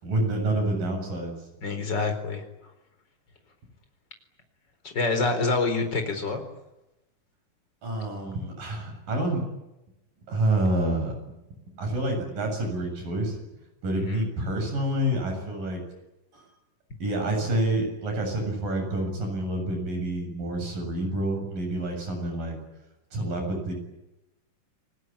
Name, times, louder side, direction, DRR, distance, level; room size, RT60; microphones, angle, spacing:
voice 1, 0.0-1.3 7.8-9.4 10.3-11.3 11.8-13.4 13.8-15.8 16.3-16.4 17.0-22.6 23.1-23.7, right 1 dB, 85° right, 4 dB, 9.2 m, -28 dB
voice 2, 1.6-2.4 4.8-6.4 14.0-14.2, left 3 dB, 30° left, 6 dB, 4.7 m, -26 dB
29.0 x 20.5 x 10.0 m, 0.96 s
omnidirectional pair, 3.8 m